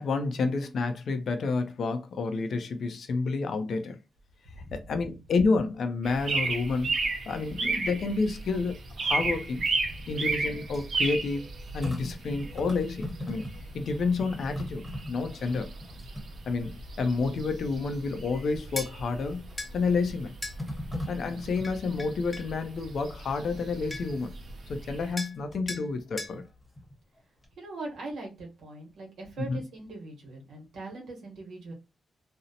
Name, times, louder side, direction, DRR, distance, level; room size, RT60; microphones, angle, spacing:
voice 1, 0.0-4.0 4.7-7.0 7.3-9.6 10.1-11.4 11.7-13.5 13.7-15.7 16.5-19.4 19.7-20.3 21.1-24.3 24.7-26.4 29.4-29.6, left 4 dB, 65° left, 0.5 m, -29 dB
sound 1, 6.0-25.1, right 3 dB, 60° right, 0.5 m, -35 dB
sound 2, 9.6-13.8 14.1-16.9 17.4-17.5 19.2-19.6 20.6-22.1 23.7-24.1 25.1-25.8 26.2-27.2 27.4-27.5, left 1 dB, ahead, 0.9 m, -41 dB
sound 3, 18.8-18.9 19.6-19.7 20.4-20.6 21.6-22.5 23.6-23.7 23.9-24.2 25.2-25.4 25.7-25.9 26.2-26.4, left 2 dB, 20° left, 0.6 m, -37 dB
voice 2, 27.6-31.7, right 2 dB, 90° right, 1.0 m, -41 dB
2.6 x 2.0 x 2.6 m
cardioid pair, 115°, 0 cm